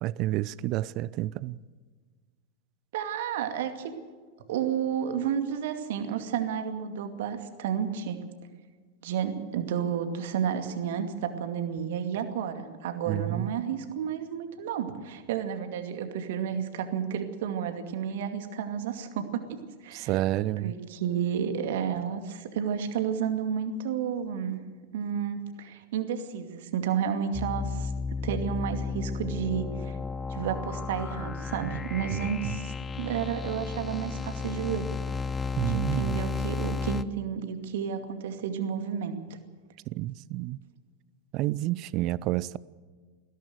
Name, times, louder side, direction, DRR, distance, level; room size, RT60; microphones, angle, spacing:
voice 1, 0.0-1.6 13.1-13.5 19.9-20.7 31.6-31.8 32.1-32.6 35.6-36.2 39.9-40.6 41.3-42.6, right 16 dB, 40° right, 0.5 m, -30 dB
voice 2, 2.9-3.9 4.5-8.2 9.0-20.2 20.6-24.6 24.9-27.9 28.2-30.0 30.3-34.9 35.7-39.2, right 8 dB, 55° right, 2.3 m, -31 dB
sound 1, 27.3-37.0, left 4 dB, 15° left, 0.7 m, -33 dB
21.0 x 16.5 x 8.0 m
figure-of-eight pair, 90°, 0 cm